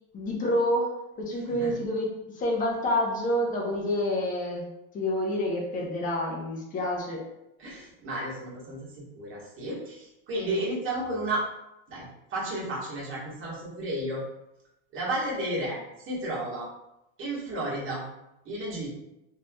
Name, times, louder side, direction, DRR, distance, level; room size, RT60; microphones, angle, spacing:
voice 1, 0.1-0.9 1.2-2.1 2.3-4.6 4.9-7.2, left 1 dB, 20° left, -2 dB, 0.7 m, -28 dB
voice 2, 7.6-11.4 11.9-14.2 14.9-16.7 17.2-18.0 18.4-18.9, right 1 dB, 35° right, -5 dB, 1.2 m, -32 dB
3.2 x 2.7 x 2.2 m, 0.88 s
supercardioid pair, 145°, 37 cm